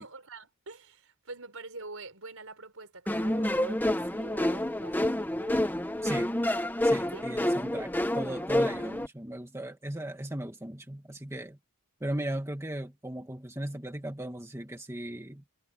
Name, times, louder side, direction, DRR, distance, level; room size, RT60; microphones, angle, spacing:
voice 1, 0.0-5.6 7.1-7.3, right 3 dB, 65° right, 6.2 m, -45 dB
sound 1, 3.1-9.1, left 1 dB, 10° left, 1.0 m, -28 dB
voice 2, 6.8-11.6 12.0-15.4, right 1 dB, 10° right, 1.9 m, -37 dB
head